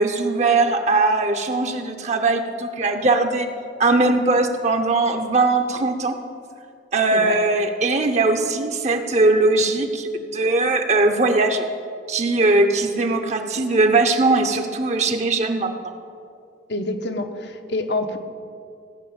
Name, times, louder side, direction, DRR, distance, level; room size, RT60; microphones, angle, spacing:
voice 1, 0.0-3.5 3.8-6.2 6.9-11.6 12.1-15.9, right 3 dB, 40° right, 6 dB, 0.8 m, -20 dB
voice 2, 16.7-18.2, left 2 dB, 75° left, 6 dB, 1.1 m, -27 dB
16.5 x 6.0 x 8.9 m, 2.4 s
head